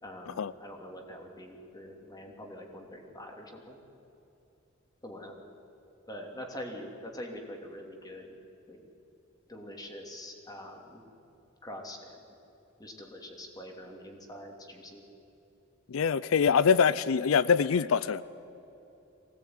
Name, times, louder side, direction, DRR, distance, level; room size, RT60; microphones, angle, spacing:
voice 1, 0.0-3.8 5.0-5.3 6.1-8.3 8.7-8.8 9.5-11.0 11.6-12.3 12.8-15.0, equal, 20° left, 2 dB, 2.9 m, -44 dB
voice 2, 15.9-18.2, left 6 dB, 90° left, 18 dB, 0.5 m, -24 dB
23.5 x 17.5 x 9.5 m, 2.9 s
head